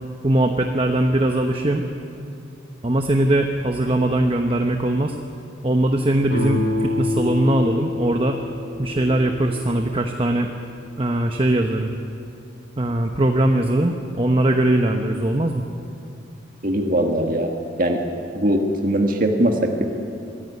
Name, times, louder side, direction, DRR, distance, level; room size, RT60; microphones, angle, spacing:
voice 1, 0.2-1.8 2.8-5.2 5.6-8.4 8.8-10.5 11.0-11.9 12.8-15.6, right 1 dB, 30° right, 4 dB, 1.0 m, -20 dB
sound 1, 6.3-9.9, left 2 dB, 65° left, 4.6 m, -27 dB
voice 2, 16.6-17.5 17.8-18.0 18.3-19.8, right 1 dB, 45° right, 3 dB, 1.8 m, -20 dB
24.0 x 15.0 x 9.4 m, 2.7 s
head